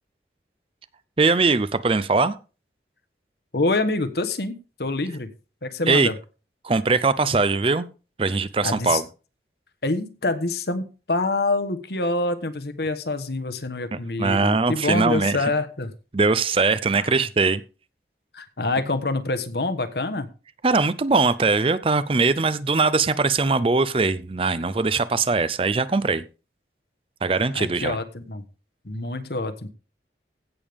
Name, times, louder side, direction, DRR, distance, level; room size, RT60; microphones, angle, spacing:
voice 1, 1.2-2.4 5.9-6.1 6.6-7.9 8.2-9.0 13.9-15.5 16.1-17.6 20.6-26.2 27.2-28.0, right 4 dB, 30° right, 15 dB, 0.5 m, -21 dB
voice 2, 3.5-5.3 5.6-6.1 8.6-9.0 9.8-15.9 16.9-17.1 18.3-20.3 27.5-28.4 28.8-29.7, left 2 dB, 65° left, 9 dB, 1.3 m, -26 dB
16.0 x 6.9 x 3.6 m, 0.34 s
head